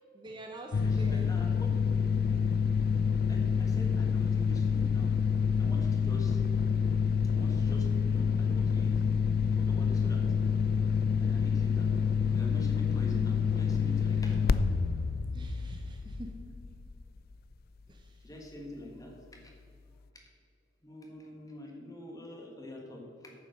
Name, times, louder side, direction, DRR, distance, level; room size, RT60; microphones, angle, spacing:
voice 1, 0.1-1.3 15.3-16.3 17.9-18.2, right 1 dB, 25° right, 2 dB, 0.7 m, -45 dB
sound 1, 0.7-17.1, left 6 dB, 50° left, 0.3 m, -28 dB
voice 2, 0.7-1.9 3.3-5.1 5.6-6.4 7.3-8.9 9.5-10.3 11.2-11.9 12.3-14.4 18.2-19.5 20.1-20.2 20.8-23.3, left 1 dB, 20° left, 1 dB, 1.6 m, -45 dB
9.3 x 7.3 x 6.3 m, 2.4 s
head